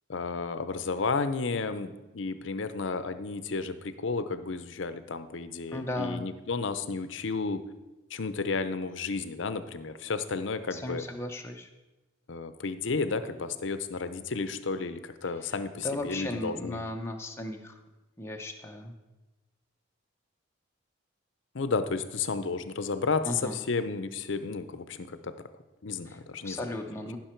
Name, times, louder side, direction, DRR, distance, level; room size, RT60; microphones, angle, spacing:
voice 1, 0.1-7.6 8.1-11.0 12.3-16.8 21.5-25.3 25.8-26.6, left 4 dB, 70° left, 11 dB, 0.6 m, -32 dB
voice 2, 5.7-6.3 10.7-11.7 15.4-15.5 15.8-17.8 18.2-18.9 23.2-23.6 26.1-26.2 26.4-27.2, left 1 dB, 15° left, 2 dB, 0.8 m, -36 dB
15.0 x 6.0 x 4.5 m, 1.1 s
head